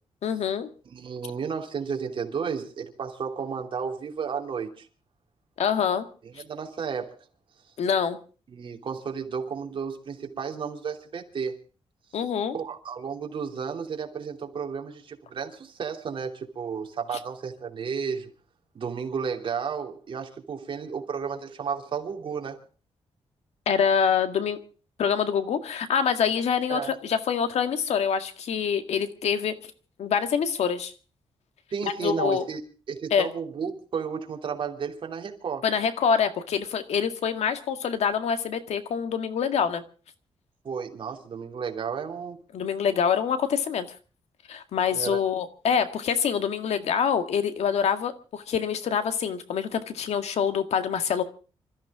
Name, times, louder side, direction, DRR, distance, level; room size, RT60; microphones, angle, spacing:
voice 1, 0.2-0.7 5.6-6.1 7.8-8.2 12.1-12.5 23.7-24.6 25.0-29.5 30.0-30.9 32.0-32.5 33.1-33.3 35.6-39.8 42.5-43.9 44.5-51.2, left 7 dB, 80° left, 1.9 m, -25 dB
voice 2, 0.8-4.9 6.4-7.2 8.5-11.5 12.5-18.3 18.7-22.6 26.7-26.9 31.7-32.6 32.9-35.7 40.6-42.4 44.9-45.2, right 6 dB, 50° right, 3.1 m, -33 dB
26.5 x 14.0 x 3.7 m
wide cardioid pair, 150°, 11 cm